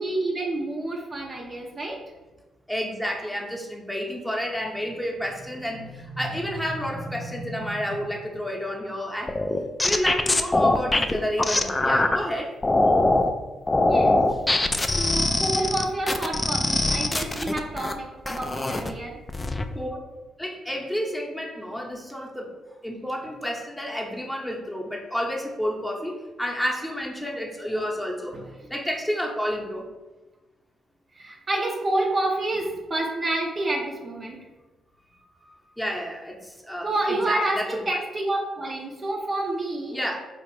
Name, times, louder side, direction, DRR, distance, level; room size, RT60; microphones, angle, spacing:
voice 1, 0.0-2.1 5.8-5.9 7.1-8.1 13.8-14.2 14.6-19.2 26.0-26.1 28.3-28.7 31.1-34.4 36.8-40.0, right 2 dB, 40° right, 0 dB, 0.6 m, -29 dB
voice 2, 2.7-9.4 9.8-12.5 19.7-20.0 20.4-22.5 22.8-28.3 28.7-29.9 35.1-35.5 35.8-37.7 39.9-40.2, equal, 5° left, -1 dB, 0.8 m, -30 dB
sound 1, 9.3-12.2 12.6-13.3 13.7-17.9 18.2-18.9 19.3-19.6, left 2 dB, 25° left, 0.3 m, -22 dB
3.9 x 2.5 x 3.1 m, 1.1 s
hypercardioid pair, 45°, 0 cm